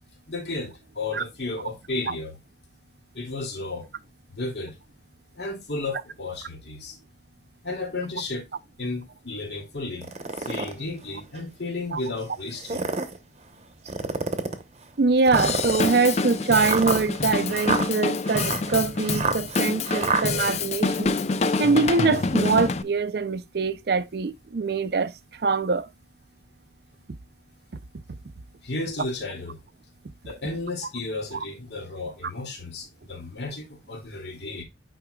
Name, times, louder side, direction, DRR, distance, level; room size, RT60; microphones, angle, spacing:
voice 1, 0.3-2.3 3.1-3.9 4.3-4.8 5.4-6.9 7.6-8.5 8.8-10.1 10.4-12.9 28.6-29.6 30.2-34.6, left 2 dB, 65° left, 2.4 m, -33 dB
sound 1, 10.0-10.7 11.4-11.5 12.5-13.2 13.9-14.6 15.3-20.2, right 4 dB, 35° right, 0.9 m, -28 dB
voice 2, 15.0-21.1 21.6-25.9, right 4 dB, 55° right, 0.5 m, -23 dB
Drum kit / Drum, 15.3-22.8, left 4 dB, 35° left, 0.4 m, -26 dB
8.8 x 4.7 x 2.3 m
head